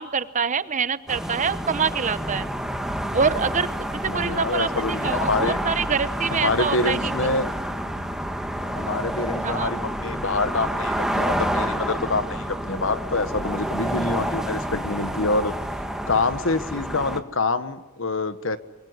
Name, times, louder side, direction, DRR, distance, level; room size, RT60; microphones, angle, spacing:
voice 1, 0.0-2.5 3.1-7.1 9.4-9.7, right 5 dB, 35° right, 14 dB, 0.9 m, -25 dB
sound 1, 1.1-17.2, equal, 5° right, 1.6 m, -29 dB
voice 2, 4.1-5.6 6.3-7.5 8.7-15.5 16.1-18.6, left 3 dB, 70° left, 12 dB, 1.4 m, -26 dB
25.5 x 22.0 x 9.7 m, 1.1 s
head